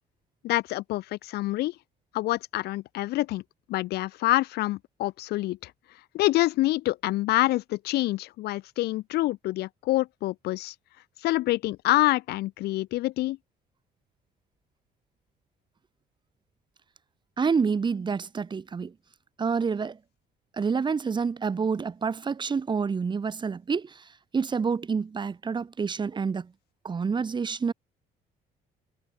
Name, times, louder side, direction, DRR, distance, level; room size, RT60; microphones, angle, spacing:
voice 1, 0.4-1.7 2.1-3.4 3.7-5.7 6.1-10.7 11.2-13.4, left 17 dB, 75° left, 0.6 m, -26 dB
voice 2, 17.4-18.9 19.4-20.0 20.5-26.5 26.8-27.7, right 5 dB, 25° right, 1.1 m, -28 dB
cardioid pair, 110°, 17 cm